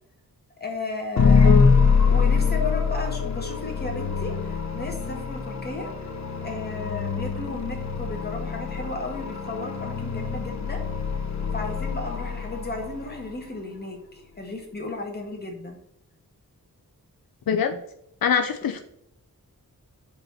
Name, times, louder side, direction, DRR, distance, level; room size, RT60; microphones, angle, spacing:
voice 1, 0.6-1.5 2.1-5.9 6.4-10.8 11.5-15.8, left 2 dB, 30° left, 1 dB, 1.8 m, -34 dB
voice 2, 1.2-1.8 17.5-17.8 18.2-18.8, left 7 dB, 80° left, 7 dB, 0.6 m, -24 dB
sound 1, 1.2-13.3, left 5 dB, 50° left, 1.1 m, -24 dB
5.2 x 4.6 x 6.2 m, 0.74 s
wide cardioid pair, 115°, 35 cm